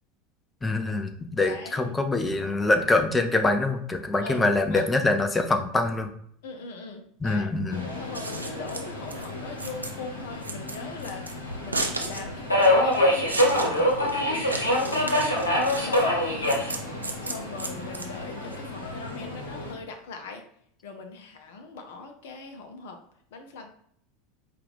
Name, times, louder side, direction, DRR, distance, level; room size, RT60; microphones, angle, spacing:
voice 1, 0.6-6.1 7.2-7.9, left 2 dB, 15° left, 7 dB, 0.6 m, -24 dB
voice 2, 1.4-1.9 4.2-4.8 6.4-7.5 8.0-20.4 20.8-23.0 23.3-23.7, left 3 dB, 65° left, 5 dB, 0.6 m, -41 dB
Subway metro underground, 7.7-19.7, left 1 dB, 90° left, 1.0 m, -27 dB
Scissors, 8.0-18.6, right 2 dB, 90° right, 0.5 m, -35 dB
4.7 x 2.4 x 3.4 m, 0.66 s
figure-of-eight pair, 80°, 0 cm